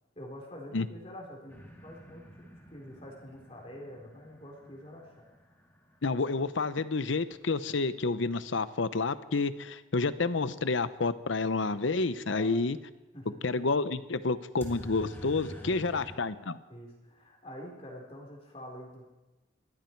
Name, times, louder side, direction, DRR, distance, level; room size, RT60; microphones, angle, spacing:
voice 1, 0.2-5.3 12.3-12.6 13.1-13.4 15.4-15.9 16.2-16.3 16.7-19.1, left 1 dB, 30° left, -1 dB, 4.0 m, -46 dB
sound 1, 1.5-7.2 14.6-16.2, equal, 10° left, 2.3 m, -49 dB
voice 2, 6.0-12.8 13.4-16.6, left 3 dB, 75° left, 14 dB, 0.8 m, -29 dB
21.5 x 14.5 x 4.6 m, 1.1 s
head